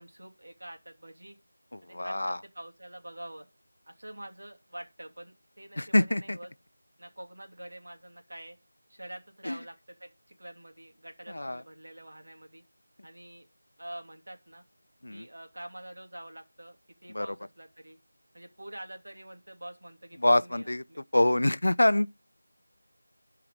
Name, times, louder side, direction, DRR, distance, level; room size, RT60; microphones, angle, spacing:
voice 1, 0.0-1.4 1.8-3.5 3.9-6.5 7.0-8.6 8.9-10.1 10.4-12.6 13.0-13.5 13.8-14.6 15.1-18.0 18.3-21.0, right 1 dB, 65° right, 2.9 m, -46 dB
voice 2, 1.9-2.4 5.8-6.4 9.5-9.6 11.3-11.6 15.0-15.2 17.1-17.3 20.2-20.8 21.1-22.1, left 1 dB, 70° left, 0.6 m, -25 dB
12.0 x 4.8 x 6.8 m
figure-of-eight pair, 175°, 0 cm